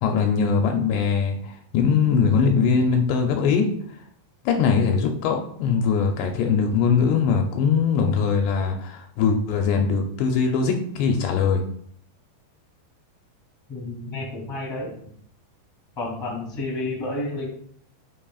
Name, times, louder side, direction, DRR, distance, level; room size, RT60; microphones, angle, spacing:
voice 1, 0.0-3.7 4.5-11.6, left 6 dB, 80° left, 3 dB, 2.7 m, -21 dB
voice 2, 13.7-15.1 15.9-17.5, left 2 dB, 10° left, -2 dB, 1.3 m, -30 dB
10.0 x 5.4 x 2.4 m, 0.63 s
omnidirectional pair, 5.2 m